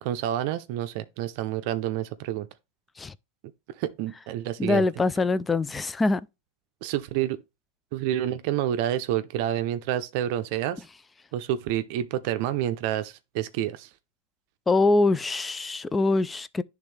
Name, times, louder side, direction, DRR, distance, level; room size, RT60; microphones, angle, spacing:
voice 1, 0.0-2.5 3.8-4.8 6.8-7.4 7.9-10.8 11.3-13.9, right 12 dB, 60° right, 0.5 m, -28 dB
voice 2, 4.6-6.2 14.7-16.6, left 3 dB, 15° left, 0.3 m, -23 dB
10.5 x 3.5 x 3.3 m
supercardioid pair, 135°, 0 cm